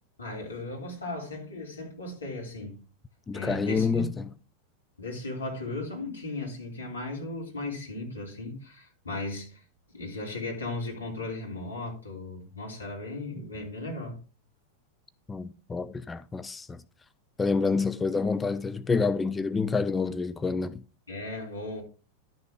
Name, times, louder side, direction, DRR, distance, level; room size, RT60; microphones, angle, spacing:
voice 1, 0.2-2.8 3.3-4.1 5.0-9.6 9.9-14.2 21.1-21.8, left 2 dB, 75° left, 3.3 m, -36 dB
voice 2, 3.3-4.3 15.3-16.8 17.4-20.8, left 4 dB, 15° left, 0.4 m, -28 dB
11.5 x 6.5 x 3.7 m
figure-of-eight pair, 90°, 0 cm